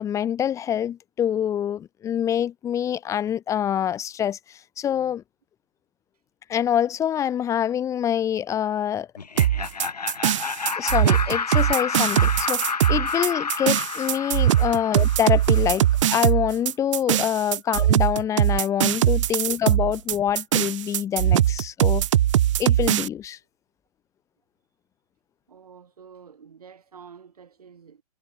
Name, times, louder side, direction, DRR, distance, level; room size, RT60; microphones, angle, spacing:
voice 1, 0.0-5.2 6.5-9.1 10.8-12.6 12.9-22.1 22.6-23.4, left 9 dB, 15° left, 1.1 m, -25 dB
Laughter, 9.2-16.0, left 5 dB, 80° left, 1.8 m, -30 dB
sound 1, 9.4-23.1, right 12 dB, 50° right, 0.6 m, -21 dB
voice 2, 25.5-28.0, right 6 dB, 70° right, 7.5 m, -48 dB
figure-of-eight pair, 125°, 20 cm